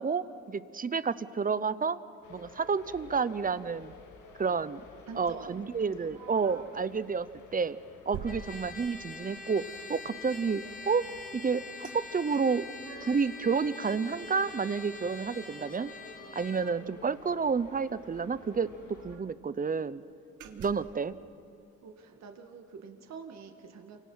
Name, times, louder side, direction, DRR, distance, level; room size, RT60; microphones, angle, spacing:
voice 1, 0.0-2.0 2.3-3.9 4.4-4.8 5.2-7.3 7.5-7.8 8.1-11.1 11.3-12.6 13.0-15.9 16.3-20.0 20.6-21.1, right 5 dB, 30° right, 16 dB, 0.8 m, -30 dB
sound 1, 2.2-19.2, left 4 dB, 80° left, 2.5 m, -53 dB
voice 2, 5.1-6.2 8.5-8.7 16.2-16.3 16.5-16.8 20.4-20.8 21.8-24.0, right 5 dB, 60° right, 4 dB, 2.1 m, -47 dB
sound 2, 6.1-6.8 7.3-7.5 8.1-9.2 11.8-12.0 12.3-13.4 13.8-15.6 15.9-16.0 16.3-16.6 17.6-17.7 18.0-18.1 18.5-19.4 19.8-20.0 20.4-21.0, right 6 dB, 80° right, 1.8 m, -48 dB
Trumpet, 8.2-16.8, left 3 dB, 25° left, 2.4 m, -45 dB
29.0 x 25.5 x 5.8 m, 2.5 s
cardioid pair, 90°, 30 cm